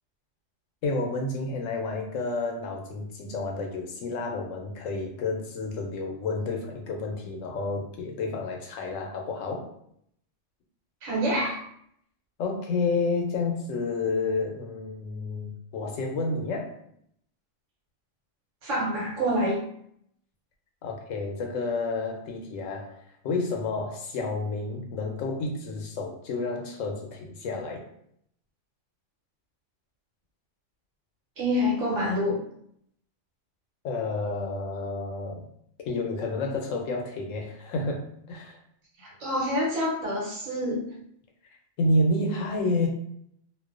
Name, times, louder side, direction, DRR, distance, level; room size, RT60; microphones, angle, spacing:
voice 1, 0.8-9.7 12.4-16.7 20.8-27.8 33.8-35.4 35.8-38.0 38.3-38.6 41.8-42.9, left 2 dB, 85° left, 2 dB, 1.0 m, -30 dB
voice 2, 11.0-11.6 18.6-19.6 31.4-32.4 39.0-40.9, equal, 80° right, -5 dB, 1.2 m, -27 dB
2.5 x 2.1 x 2.4 m, 0.69 s
omnidirectional pair, 1.3 m